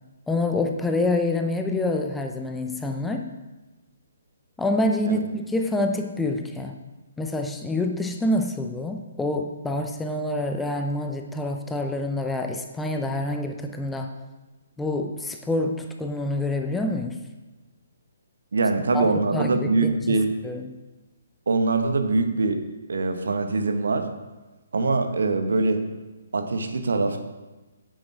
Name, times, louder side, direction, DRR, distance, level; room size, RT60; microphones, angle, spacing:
voice 1, 0.3-3.3 4.6-6.7 7.2-14.1 14.8-17.2 18.9-20.2 20.4-20.7, left 2 dB, 5° left, 4 dB, 0.6 m, -27 dB
voice 2, 18.5-20.3 21.5-22.6 22.9-24.1 24.7-25.8 26.3-27.2, right 3 dB, 60° right, 6 dB, 1.2 m, -23 dB
9.3 x 7.9 x 4.8 m, 1.1 s
figure-of-eight pair, 135°, 0 cm